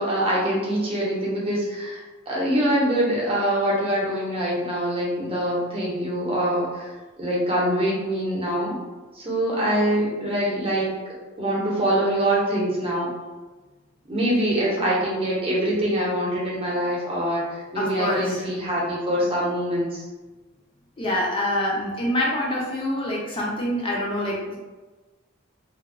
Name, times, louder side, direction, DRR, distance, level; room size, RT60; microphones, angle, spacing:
voice 1, 0.0-8.8 9.1-11.0 11.4-13.1 14.1-20.0, right 1 dB, 30° right, -5 dB, 0.7 m, -24 dB
voice 2, 14.5-14.9 17.7-18.4 21.0-24.6, left 1 dB, 25° left, -3 dB, 0.4 m, -26 dB
2.8 x 2.1 x 2.6 m, 1.2 s
head